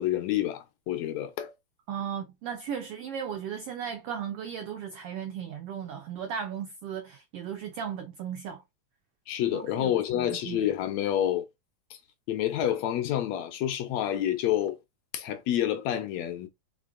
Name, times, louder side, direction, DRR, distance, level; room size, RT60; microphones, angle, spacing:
voice 1, 0.0-1.5 9.3-11.4 12.3-14.8 15.1-16.5, left 11 dB, 75° left, 1.8 m, -28 dB
voice 2, 1.9-8.6 9.5-10.6, right 8 dB, 90° right, 1.3 m, -36 dB
5.2 x 3.3 x 2.4 m
omnidirectional pair, 3.4 m